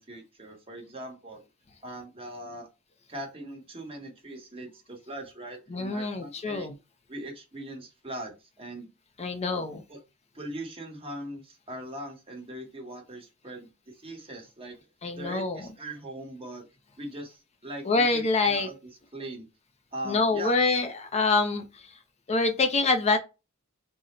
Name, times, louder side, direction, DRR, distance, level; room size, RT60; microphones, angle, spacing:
voice 1, 0.0-1.4 1.8-2.7 3.1-6.7 7.1-8.9 9.9-10.0 10.3-14.8 15.2-16.7 17.0-18.7 19.1-19.5 19.9-20.6, right 1 dB, 25° right, 1.1 m, -40 dB
voice 2, 5.7-6.7 9.2-9.8 15.0-15.6 17.8-18.7 20.1-22.0 22.3-23.2, left 3 dB, 30° left, 0.5 m, -26 dB
3.8 x 2.0 x 4.1 m
head